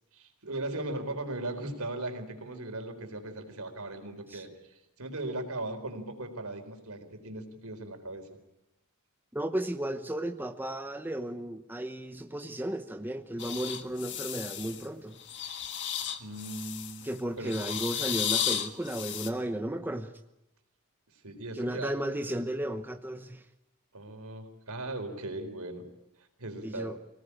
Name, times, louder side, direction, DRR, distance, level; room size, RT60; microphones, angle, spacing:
voice 1, 0.1-8.3 16.2-17.1 17.4-17.5 21.2-22.0 23.9-25.9 26.4-26.9, right 2 dB, 75° right, 6 dB, 4.2 m, -38 dB
voice 2, 9.3-15.2 17.0-20.1 21.5-23.4 26.6-27.0, right 1 dB, 10° right, 7 dB, 0.9 m, -34 dB
sound 1, 13.4-14.8 15.2-17.1 17.4-19.3, left 9 dB, 55° left, 1.7 m, -34 dB
25.0 x 18.0 x 9.9 m, 0.92 s
head